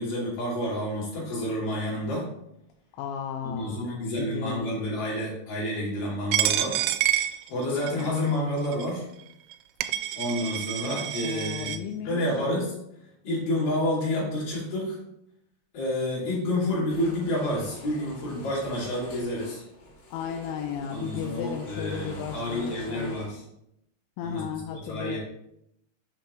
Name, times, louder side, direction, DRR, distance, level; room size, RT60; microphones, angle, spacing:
voice 1, 0.0-2.3 3.4-6.8 7.5-9.1 10.2-12.8 13.2-15.0 15.7-19.6 20.9-23.4 24.2-24.4 24.7-25.2, left 1 dB, 50° left, -5 dB, 4.1 m, -29 dB
voice 2, 3.0-4.8 11.2-12.2 20.1-23.2 24.2-25.2, left 8 dB, 85° left, 4 dB, 2.9 m, -35 dB
Coin (dropping), 6.3-8.1 8.7-8.9 9.5-9.6 9.8-11.8, right 12 dB, 90° right, 3.2 m, -28 dB
sound 1, 16.9-23.3, left 2 dB, 70° left, 4.2 m, -45 dB
7.9 x 6.4 x 3.2 m, 0.80 s
omnidirectional pair, 5.8 m